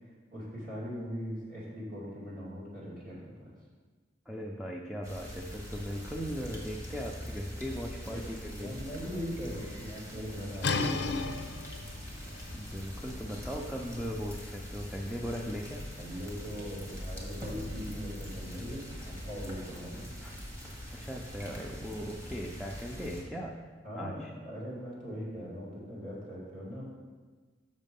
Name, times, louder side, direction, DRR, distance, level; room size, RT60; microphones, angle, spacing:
voice 1, 0.3-3.5 7.7-7.8 8.1-8.3 8.6-11.4 16.0-20.1 23.8-26.8, equal, 50° right, -7 dB, 2.8 m, -40 dB
voice 2, 4.3-8.7 12.5-15.9 20.2-20.4 20.9-23.6 24.0-24.3, equal, ahead, -1 dB, 0.5 m, -38 dB
sound 1, 5.0-23.2, equal, 15° right, 1.5 m, -43 dB
sound 2, 10.6-16.2, left 3 dB, 65° left, 0.6 m, -37 dB
6.5 x 6.4 x 5.4 m, 1.4 s
head